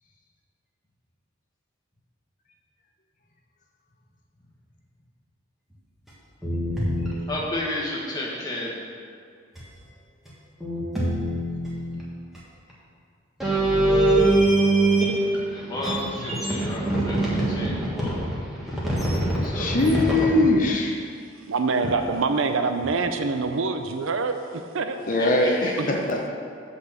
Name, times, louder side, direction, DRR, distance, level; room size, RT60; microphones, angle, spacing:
sound 1, 6.1-6.2 6.4-7.1 9.6-9.7 10.3-10.4 10.6-11.9 12.3-12.4 13.4-15.4 15.7-20.4 21.8-21.9 22.8-22.9, right 2 dB, ahead, 1.5 m, -23 dB
voice 1, 7.3-8.8 15.5-18.3 19.3-20.3 21.7-22.0 25.2-25.9, left 1 dB, 20° left, -5 dB, 1.5 m, -33 dB
voice 2, 19.5-20.9 25.1-26.3, left 2 dB, 40° left, 1 dB, 0.7 m, -21 dB
voice 3, 21.5-25.2 25.7-25.9, right 4 dB, 70° right, 7 dB, 0.5 m, -25 dB
8.0 x 4.2 x 7.1 m, 2.2 s
head